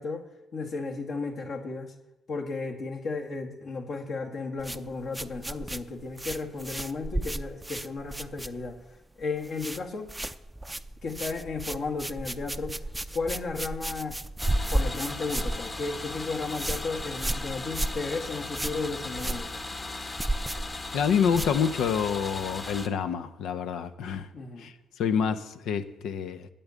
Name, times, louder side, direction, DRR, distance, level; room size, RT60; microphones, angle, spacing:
voice 1, 0.0-1.9 2.3-8.8 9.2-10.1 11.0-12.8 13.1-14.2 14.7-19.5 24.3-24.7, left 4 dB, 60° left, 2.0 m, -34 dB
sound 1, 4.6-8.9 9.2-9.8 10.1-22.0, right 1 dB, 10° right, 0.5 m, -33 dB
sound 2, 14.4-22.9, left 2 dB, 30° left, 1.4 m, -37 dB
voice 2, 20.9-24.3 24.6-24.7 25.0-26.5, left 7 dB, 80° left, 0.9 m, -27 dB
8.8 x 8.6 x 9.4 m
cardioid pair, 90°, 0 cm